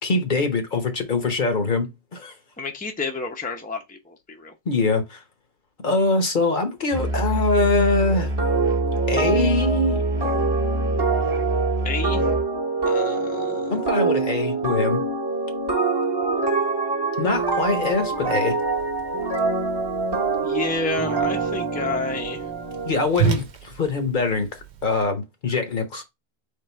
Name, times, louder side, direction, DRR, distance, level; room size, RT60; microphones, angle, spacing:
voice 1, 0.0-2.3 4.7-5.2 5.8-8.3 9.1-10.0 13.7-15.0 17.2-18.6 22.8-24.5 24.8-26.0, left 3 dB, 50° left, 1.0 m, -23 dB
voice 2, 2.6-4.5 11.8-12.3 12.8-13.9 20.4-22.4, left 3 dB, 10° left, 0.6 m, -30 dB
Musical instrument, 6.9-12.5, right 1 dB, 50° right, 1.0 m, -26 dB
sound 1, 8.4-23.0, right 4 dB, 25° right, 1.0 m, -25 dB
Whoosh swoosh swish, 17.3-25.0, right 8 dB, 90° right, 1.0 m, -33 dB
3.7 x 3.2 x 4.3 m
omnidirectional pair, 1.1 m